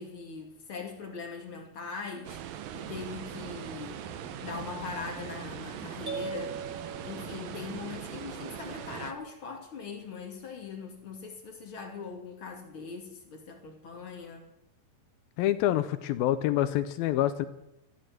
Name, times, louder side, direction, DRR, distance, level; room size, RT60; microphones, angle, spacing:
voice 1, 0.0-4.0 4.4-6.6 7.0-14.5, left 5 dB, 35° left, 2 dB, 2.8 m, -41 dB
sound 1, 2.2-9.1, right 10 dB, 70° right, 2.4 m, -41 dB
sound 2, 2.8-9.2, left 8 dB, 55° left, 2.0 m, -50 dB
sound 3, 6.1-8.0, right 5 dB, 30° right, 0.9 m, -39 dB
voice 2, 15.4-17.5, left 13 dB, 80° left, 12 dB, 2.2 m, -26 dB
13.5 x 12.5 x 7.8 m, 0.86 s
omnidirectional pair, 4.9 m